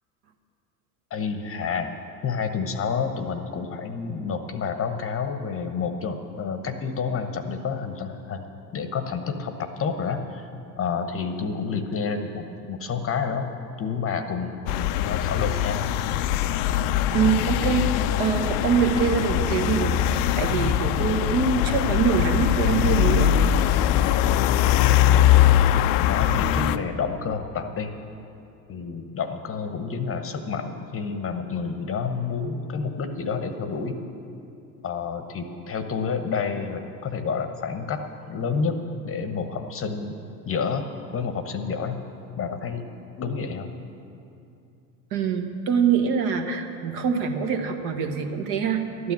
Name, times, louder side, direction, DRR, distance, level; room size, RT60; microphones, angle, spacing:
voice 1, 1.1-1.9 2.2-8.4 8.7-10.5 10.8-13.5 13.8-15.8 24.0-24.3 24.8-27.9 28.7-34.0 34.8-38.8 39.0-40.2 40.5-40.9 41.1-42.0 42.4-42.9 43.2-43.7, left 5 dB, 25° left, 8 dB, 1.0 m, -29 dB
sound 1, 14.7-26.8, left 11 dB, 45° left, 0.5 m, -21 dB
voice 2, 17.1-23.3 45.1-49.1, right 6 dB, 50° right, 5 dB, 1.4 m, -24 dB
12.5 x 9.3 x 7.5 m, 2.7 s
hypercardioid pair, 80°, 49 cm